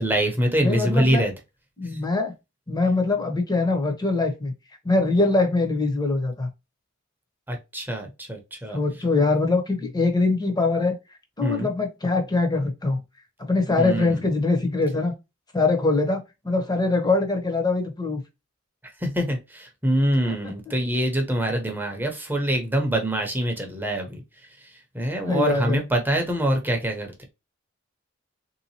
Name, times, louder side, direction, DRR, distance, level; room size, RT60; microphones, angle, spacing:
voice 1, 0.0-1.3 1.8-2.0 7.5-8.8 11.4-11.7 13.8-14.3 19.0-24.2 24.6-27.2, equal, 10° right, 0.8 m, -25 dB
voice 2, 0.6-1.2 1.8-2.3 2.7-4.5 4.8-6.5 8.7-10.9 11.4-13.0 13.4-15.1 15.5-18.2 20.3-20.4 25.3-25.8, left 3 dB, 20° left, 0.9 m, -23 dB
3.6 x 2.8 x 2.8 m
head